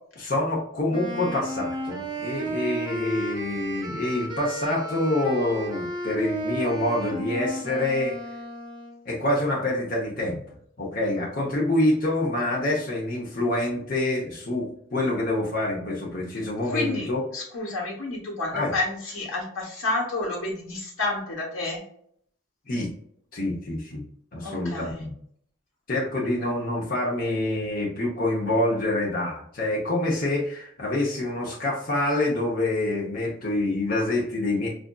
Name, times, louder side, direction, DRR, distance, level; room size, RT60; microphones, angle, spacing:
voice 1, 0.2-8.2 9.0-10.4 10.8-17.2 18.5-18.7 22.7-22.9 23.3-24.0 24.3-25.1 25.9-34.7, left 1 dB, 40° left, -4 dB, 0.8 m, -26 dB
Wind instrument woodwind instrument, 0.9-9.0, right 1 dB, 20° right, 0.5 m, -33 dB
voice 2, 16.3-17.1 17.3-21.8 24.4-25.0, left 2 dB, 80° left, -1 dB, 1.1 m, -30 dB
4.8 x 2.5 x 2.3 m, 0.65 s
head